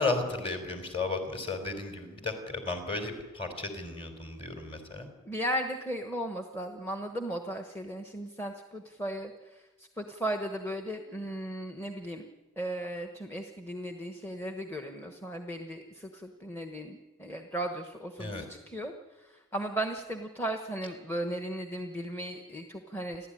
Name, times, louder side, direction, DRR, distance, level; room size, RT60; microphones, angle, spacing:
voice 1, 0.0-5.1 18.2-18.4, left 3 dB, 25° left, 6 dB, 3.8 m, -34 dB
voice 2, 5.2-12.3 12.6-23.3, right 1 dB, 10° left, 5 dB, 1.2 m, -36 dB
30.0 x 12.5 x 10.0 m, 1.2 s
head